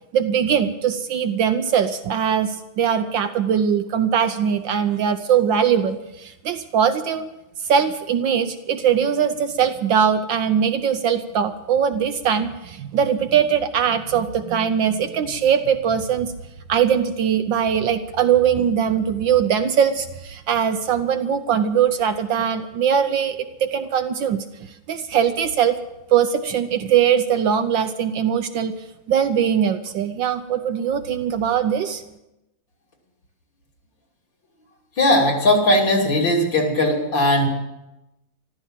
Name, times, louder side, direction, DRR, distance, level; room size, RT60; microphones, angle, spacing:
voice 1, 0.1-7.3 7.6-16.3 16.7-24.4 24.9-25.8 26.1-28.7 29.1-32.0, right 8 dB, 65° right, 9 dB, 1.3 m, -21 dB
voice 2, 35.0-37.5, left 1 dB, 55° left, -1 dB, 3.6 m, -18 dB
14.5 x 12.5 x 7.3 m, 0.94 s
omnidirectional pair, 2.4 m